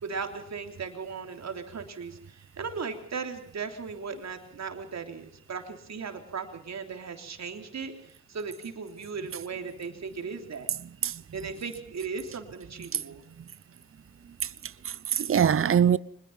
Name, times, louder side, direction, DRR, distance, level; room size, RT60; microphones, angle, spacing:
voice 1, 0.0-10.7 11.3-13.2, right 5 dB, 65° right, 3.4 m, -37 dB
voice 2, 14.4-16.0, right 8 dB, 50° right, 0.8 m, -24 dB
23.5 x 21.0 x 5.8 m
supercardioid pair, 50°, 29 cm